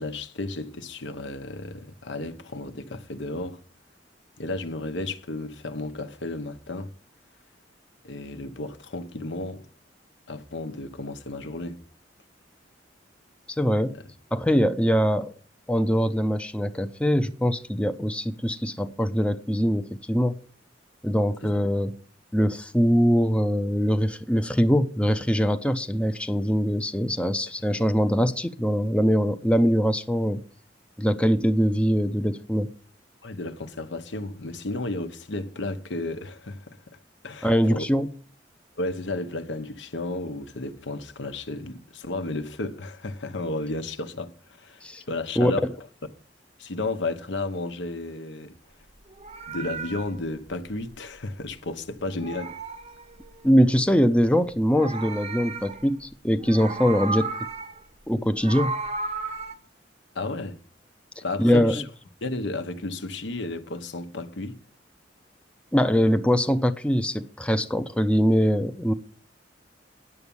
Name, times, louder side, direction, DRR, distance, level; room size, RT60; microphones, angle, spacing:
voice 1, 0.0-3.6 4.4-6.9 8.0-9.7 10.3-11.8 13.9-14.0 21.4-21.5 33.2-37.9 38.8-44.3 44.6-45.7 46.6-48.5 49.5-52.6 60.1-60.6 61.2-61.8 62.2-64.6, left 2 dB, 75° left, 0.9 m, -33 dB
voice 2, 13.5-13.9 14.3-15.3 15.7-20.4 21.0-21.9 22.3-30.4 31.0-32.7 37.4-38.1 44.8-45.0 45.4-45.5 53.4-57.3 58.1-58.7 61.4-61.8 65.7-68.9, equal, 5° left, 0.5 m, -22 dB
Meow, 49.0-51.7 52.0-53.7 54.5-56.1 56.4-57.9 58.2-59.5, right 3 dB, 35° right, 0.7 m, -34 dB
9.6 x 7.1 x 6.9 m
head